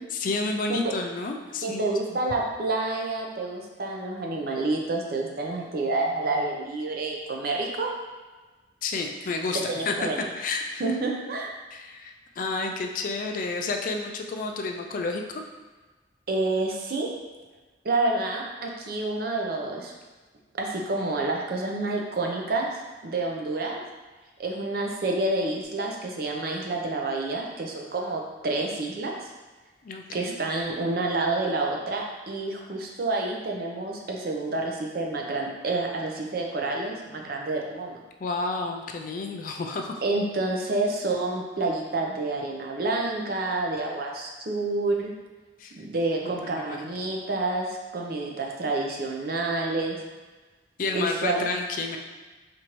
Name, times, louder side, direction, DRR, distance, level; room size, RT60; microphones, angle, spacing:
voice 1, 0.2-1.9 8.8-9.9 10.4-10.8 11.7-15.4 29.8-30.3 38.2-40.0 45.6-45.8 46.2-46.9 50.8-52.0, left 3 dB, 45° left, 4 dB, 0.3 m, -30 dB
voice 2, 1.6-7.9 9.5-10.3 10.8-11.5 16.3-17.1 17.8-19.9 20.6-23.8 24.4-29.1 30.1-38.0 40.0-45.1 45.8-50.0 50.9-51.5, right 2 dB, 55° right, 0 dB, 0.5 m, -28 dB
4.4 x 2.5 x 3.0 m, 1.3 s
head